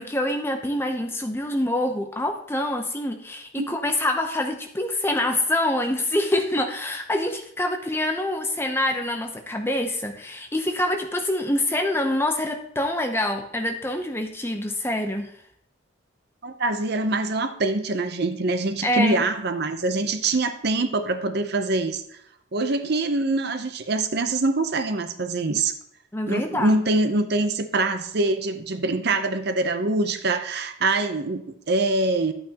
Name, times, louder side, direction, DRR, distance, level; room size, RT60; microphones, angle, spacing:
voice 1, 0.0-15.3 18.8-19.2 26.1-26.8, left 1 dB, 10° left, 4 dB, 0.7 m, -26 dB
voice 2, 16.4-22.0 22.5-25.7 26.3-32.3, right 2 dB, 50° right, 8 dB, 0.6 m, -24 dB
11.0 x 8.7 x 2.9 m, 0.70 s
head